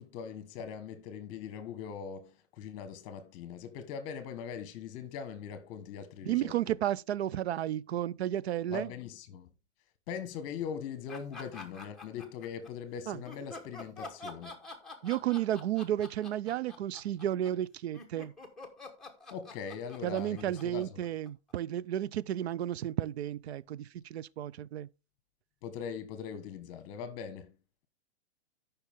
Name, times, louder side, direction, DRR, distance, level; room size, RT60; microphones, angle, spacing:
voice 1, 0.0-6.5 8.7-9.5 10.1-14.6 19.3-20.9 25.6-27.5, left 7 dB, 30° left, 1.3 m, -41 dB
voice 2, 6.3-8.9 13.1-13.2 15.0-18.3 20.0-24.9, right 12 dB, 70° right, 0.5 m, -32 dB
sound 1, 11.1-12.7 13.2-21.5, left 3 dB, ahead, 1.1 m, -47 dB
13.0 x 5.7 x 3.5 m
hypercardioid pair, 150°, 34 cm